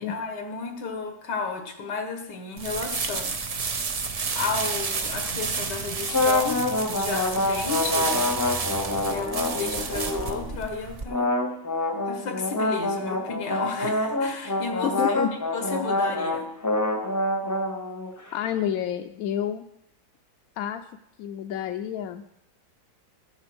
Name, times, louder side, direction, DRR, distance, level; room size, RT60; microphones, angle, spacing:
voice 1, 0.0-3.8 4.4-8.4 8.9-11.3 12.0-15.2 15.5-16.5, left 5 dB, 90° left, 4 dB, 2.0 m, -33 dB
sound 1, 2.6-11.0, right 4 dB, 60° right, 0.3 m, -30 dB
sound 2, 6.1-10.5 11.1-18.3, left 2 dB, 15° left, 0.6 m, -26 dB
voice 2, 14.8-15.5 18.3-19.6 20.6-20.8 21.2-22.2, left 9 dB, 70° left, 6 dB, 1.0 m, -29 dB
13.5 x 6.9 x 6.1 m, 0.76 s
omnidirectional pair, 1.8 m